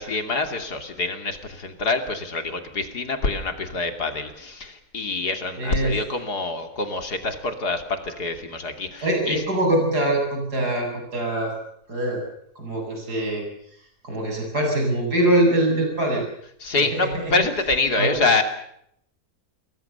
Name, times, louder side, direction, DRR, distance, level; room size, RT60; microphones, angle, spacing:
voice 1, 0.0-9.4 16.6-18.4, left 3 dB, 80° left, 7 dB, 3.5 m, -26 dB
voice 2, 5.6-5.9 9.0-11.5 11.9-12.2 12.6-13.4 14.0-16.2 16.7-17.3 18.0-18.3, right 1 dB, 85° right, 2 dB, 8.3 m, -23 dB
29.0 x 21.5 x 7.0 m, 0.71 s
omnidirectional pair, 1.7 m